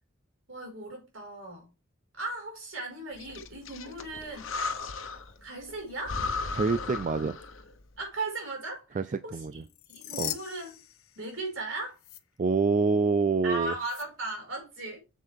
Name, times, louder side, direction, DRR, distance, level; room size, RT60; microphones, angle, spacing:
voice 1, 0.5-1.7 2.2-4.5 5.4-6.2 8.0-9.4 9.9-10.8 11.2-12.0 13.4-15.0, right 2 dB, 65° right, 4.9 m, -37 dB
Breathing, 3.2-5.4 5.7-5.8 6.0-7.7, left 4 dB, 65° left, 1.1 m, -35 dB
voice 2, 6.5-7.4 9.0-9.1 9.3-9.6 10.2-10.3 12.4-13.7, right 4 dB, 35° right, 0.3 m, -26 dB
sound 1, 9.6-11.6 12.0-12.2 13.8-14.0, left 13 dB, 85° left, 0.8 m, -40 dB
7.9 x 7.5 x 3.5 m
head